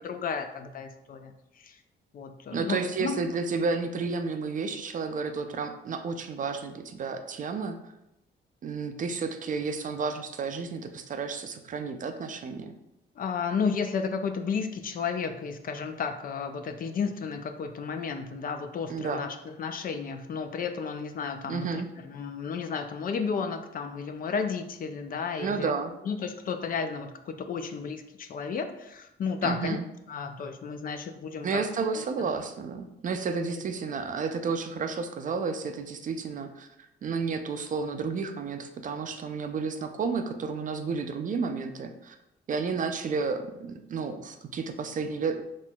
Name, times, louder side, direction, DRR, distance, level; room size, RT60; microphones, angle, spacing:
voice 1, 0.0-1.8 2.1-3.2 13.2-25.7 26.0-29.8 30.1-31.6 31.9-32.0, left 5 dB, 45° left, 7 dB, 0.4 m, -33 dB
voice 2, 2.5-7.8 8.6-12.7 18.9-19.3 21.5-21.9 25.4-25.9 29.4-29.8 31.4-36.7 37.0-42.2 42.5-45.4, right 4 dB, 40° right, 7 dB, 0.4 m, -31 dB
4.2 x 3.0 x 2.3 m, 0.86 s
cardioid pair, 90°, 20 cm